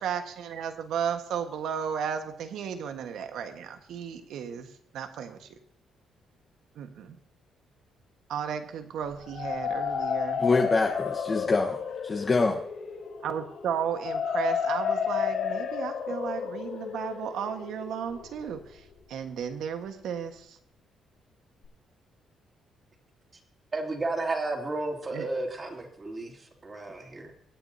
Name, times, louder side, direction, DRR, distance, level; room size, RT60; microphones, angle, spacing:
voice 1, 0.0-4.7 4.9-5.5 6.7-7.2 8.3-10.4 13.2-20.6 25.1-25.3, right 8 dB, 80° right, 6 dB, 1.5 m, -34 dB
sound 1, 9.1-18.9, left 7 dB, 70° left, 5.8 m, -32 dB
voice 2, 10.4-12.6, left 3 dB, 35° left, 0 dB, 1.3 m, -25 dB
voice 3, 23.7-27.3, right 2 dB, 35° right, 0 dB, 3.2 m, -33 dB
23.0 x 9.4 x 2.8 m, 0.73 s
cardioid pair, 90°, 0 cm